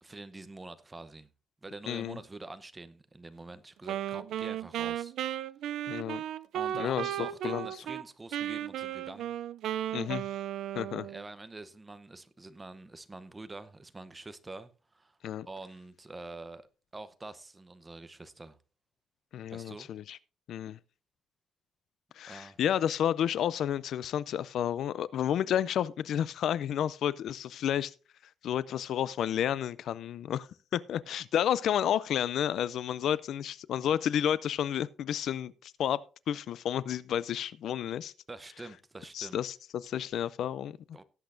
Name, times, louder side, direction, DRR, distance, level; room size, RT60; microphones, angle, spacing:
voice 1, 0.0-1.3 1.6-5.1 6.5-9.4 11.0-15.2 15.5-16.7 16.9-18.6 19.5-19.9 22.3-22.6 38.3-39.4 40.9-41.0, right 2 dB, 15° right, 0.8 m, -46 dB
voice 2, 1.9-2.2 5.9-6.2 6.7-7.2 7.4-7.7 9.9-10.3 10.8-11.1 15.2-15.5 19.3-20.2 20.5-20.8 22.2-27.9 28.4-30.5 30.7-36.0 36.3-38.1 39.1-40.8, left 10 dB, 70° left, 0.4 m, -31 dB
Wind instrument woodwind instrument, 3.8-8.0 8.3-11.2, right 11 dB, 80° right, 0.4 m, -35 dB
18.0 x 8.1 x 2.6 m
cardioid pair, 140°, 0 cm